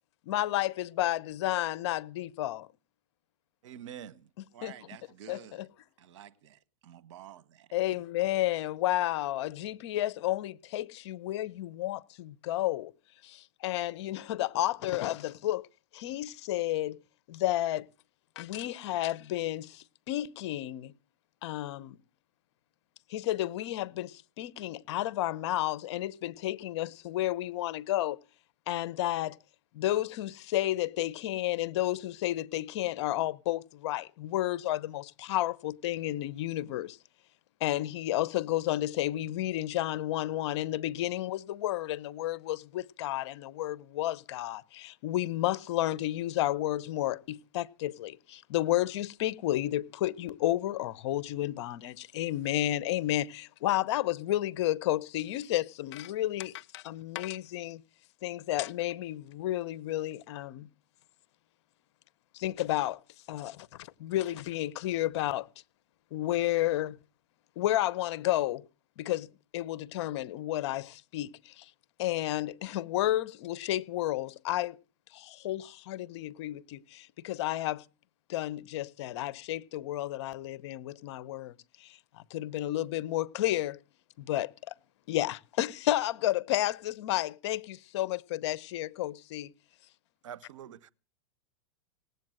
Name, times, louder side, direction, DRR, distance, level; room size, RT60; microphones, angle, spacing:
voice 1, 0.3-2.7 4.6-4.7 5.3-5.4 7.7-12.9 13.2-15.7 15.9-17.0 17.3-17.9 18.4-20.9 21.4-22.0 23.1-28.2 28.7-29.4 29.7-37.0 37.6-57.8 58.2-60.7 62.3-63.0 63.3-65.5 66.1-67.0 67.6-68.6 69.0-71.7 72.0-74.8 75.1-77.8 78.3-81.5 81.8-82.0 82.3-83.8 84.2-84.7 85.1-89.5, left 14 dB, 60° left, 0.8 m, -31 dB
voice 2, 3.6-4.3 90.2-90.9, right 9 dB, 80° right, 0.8 m, -45 dB
voice 3, 4.5-5.7 6.0-7.7, right 10 dB, 65° right, 1.5 m, -51 dB
18.5 x 8.1 x 7.7 m
hypercardioid pair, 125°, 16 cm